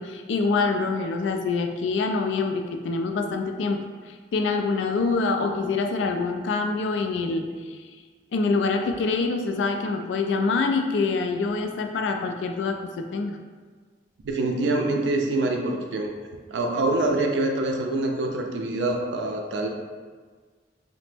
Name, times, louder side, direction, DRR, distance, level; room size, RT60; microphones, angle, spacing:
voice 1, 0.0-3.8 4.1-7.8 8.3-13.4, left 4 dB, 80° left, 5 dB, 0.3 m, -25 dB
voice 2, 14.2-16.1 16.5-19.7, right 2 dB, 75° right, 2 dB, 0.4 m, -25 dB
3.0 x 2.0 x 3.2 m, 1.5 s
head